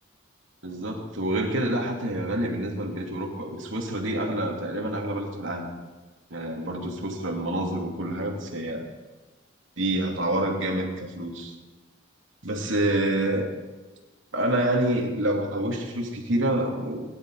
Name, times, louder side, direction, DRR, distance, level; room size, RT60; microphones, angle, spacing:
voice 1, 0.6-5.7 6.3-8.8 9.8-11.6 12.4-13.5 14.3-17.0, right 1 dB, 70° right, 0 dB, 3.0 m, -27 dB
22.0 x 12.0 x 5.0 m, 1.2 s
head